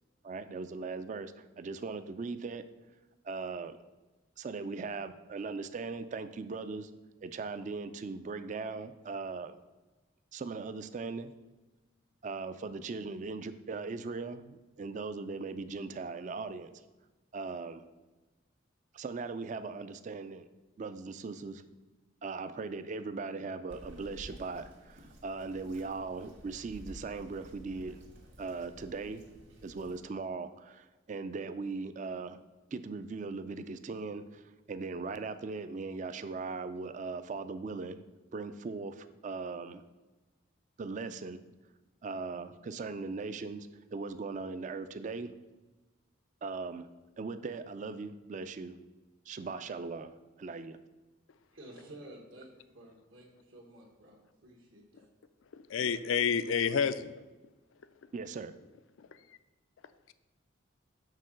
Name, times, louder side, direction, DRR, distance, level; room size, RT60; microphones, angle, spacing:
voice 1, 0.2-2.6 3.2-3.8 4.4-6.9 7.2-9.6 10.3-11.3 12.2-16.7 17.3-17.8 18.9-20.5 20.8-21.6 22.2-28.0 28.4-29.2 29.6-32.4 32.7-38.0 38.3-39.8 40.8-41.4 42.0-45.3 46.4-46.9 47.2-48.8 49.3-50.8 58.1-58.5, right 4 dB, 35° right, 11 dB, 0.3 m, -39 dB
Bird vocalization bird call bird song, 23.7-30.0, equal, 60° right, 1.6 m, -52 dB
voice 2, 51.5-55.1, right 1 dB, 80° right, -2 dB, 1.4 m, -52 dB
voice 3, 55.5-57.2 59.0-59.1, left 6 dB, 80° left, 13 dB, 0.4 m, -29 dB
6.6 x 3.7 x 6.2 m, 1.2 s
head